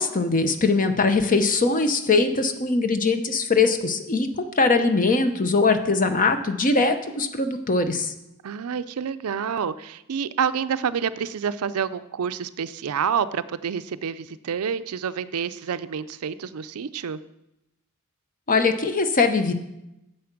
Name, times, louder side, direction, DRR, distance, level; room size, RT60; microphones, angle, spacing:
voice 1, 0.0-8.1 18.5-19.5, left 3 dB, 40° left, 8 dB, 0.8 m, -21 dB
voice 2, 8.4-17.2, right 7 dB, 70° right, 14 dB, 0.4 m, -28 dB
8.5 x 7.7 x 6.0 m, 0.88 s
head